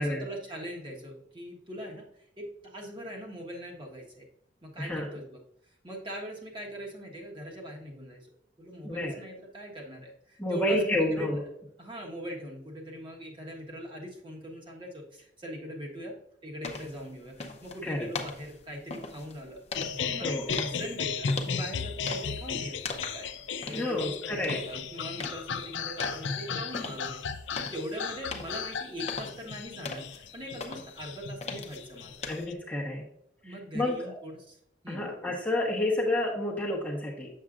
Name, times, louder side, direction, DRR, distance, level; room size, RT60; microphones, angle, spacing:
voice 1, 0.0-4.3 4.6-5.4 5.8-8.3 8.6-11.3 11.8-16.2 16.4-19.6 20.0-23.3 23.7-32.1 33.4-34.6 34.8-35.1, equal, 25° right, -2 dB, 1.3 m, -41 dB
voice 2, 4.8-5.1 8.8-9.1 10.4-11.4 17.8-18.1 20.2-20.5 23.7-24.6 32.2-33.0 33.4-34.2 34.9-37.3, left 1 dB, 10° left, -3 dB, 1.0 m, -29 dB
sound 1, 16.6-32.5, left 4 dB, 35° left, 0.7 m, -42 dB
sound 2, 19.7-32.5, left 6 dB, 75° left, 0.6 m, -35 dB
7.5 x 7.1 x 2.5 m, 0.72 s
head